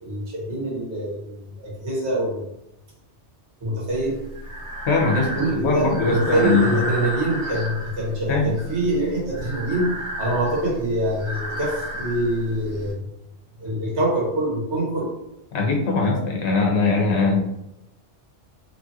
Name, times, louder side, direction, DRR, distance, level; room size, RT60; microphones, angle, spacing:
voice 1, 0.0-2.4 3.6-4.2 5.4-9.9 10.2-13.1 13.6-15.1 16.1-16.2, right 1 dB, 75° right, -4 dB, 1.4 m, -25 dB
Breathing, 3.9-12.9, equal, 40° right, 1.0 m, -32 dB
voice 2, 4.9-6.8 8.3-8.6 15.5-17.4, left 3 dB, 70° left, 0 dB, 1.0 m, -21 dB
3.0 x 2.4 x 2.6 m, 0.85 s
omnidirectional pair, 1.2 m